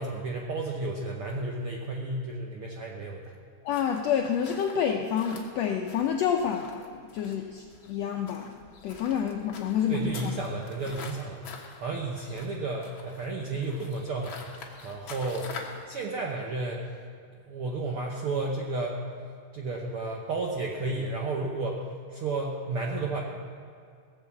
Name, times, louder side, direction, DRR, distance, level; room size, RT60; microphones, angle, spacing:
voice 1, 0.0-3.3 9.9-15.5 15.9-16.9 17.5-19.0 19.5-23.2, right 2 dB, 70° right, -1 dB, 1.3 m, -32 dB
voice 2, 3.6-10.4, left 8 dB, 80° left, 3 dB, 1.5 m, -29 dB
sound 1, 3.7-15.8, left 4 dB, 50° left, 1.6 m, -46 dB
18.0 x 7.4 x 7.3 m, 2.2 s
omnidirectional pair, 3.7 m